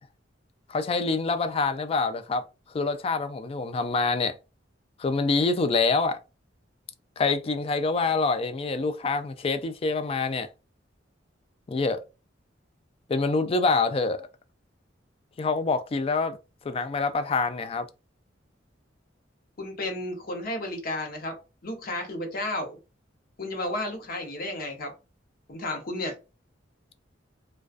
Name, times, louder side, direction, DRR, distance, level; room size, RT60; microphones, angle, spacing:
voice 1, 0.7-2.4 2.7-4.4 5.0-6.2 7.2-10.5 11.7-12.0 13.1-14.3 15.4-16.4 16.6-17.9, left 3 dB, 30° left, 0.3 m, -26 dB
voice 2, 19.6-21.4 21.6-22.8 23.4-24.9 25.5-26.2, left 1 dB, 55° left, 0.7 m, -32 dB
2.4 x 2.2 x 2.4 m
head